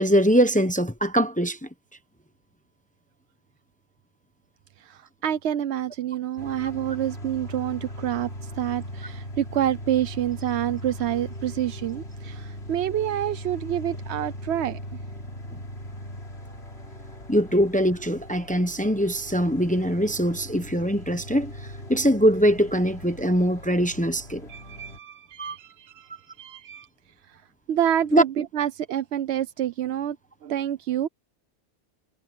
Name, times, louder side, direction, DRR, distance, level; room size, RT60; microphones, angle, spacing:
voice 1, 0.0-1.6 15.5-15.6 17.3-21.5 21.9-24.5 25.4-25.6 28.1-28.2, equal, 10° left, 0.9 m, -22 dB
voice 2, 4.8-14.8 24.5-26.9 27.2-27.4 27.7-30.2 30.4-31.1, right 11 dB, 90° right, 0.9 m, -28 dB
sound 1, 6.4-25.0, equal, 80° left, 3.8 m, -39 dB
omnidirectional pair, 1.1 m